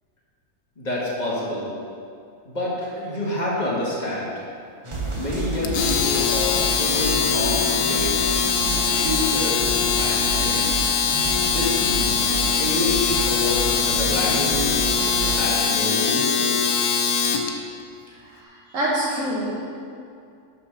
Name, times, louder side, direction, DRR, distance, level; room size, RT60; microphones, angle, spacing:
voice 1, 0.8-1.7 2.5-4.3 5.1-8.1 8.9-10.9 11.4-12.1 12.6-15.1 15.4-16.6, left 1 dB, 30° left, -6 dB, 1.8 m, -28 dB
sound 1, 4.8-15.5, right 2 dB, 30° right, 0.5 m, -30 dB
Domestic sounds home sounds, 5.6-17.5, left 6 dB, 85° left, 1.2 m, -22 dB
voice 2, 18.3-19.5, right 1 dB, 60° right, -6 dB, 1.5 m, -26 dB
6.1 x 6.0 x 6.0 m, 2.4 s
omnidirectional pair, 1.6 m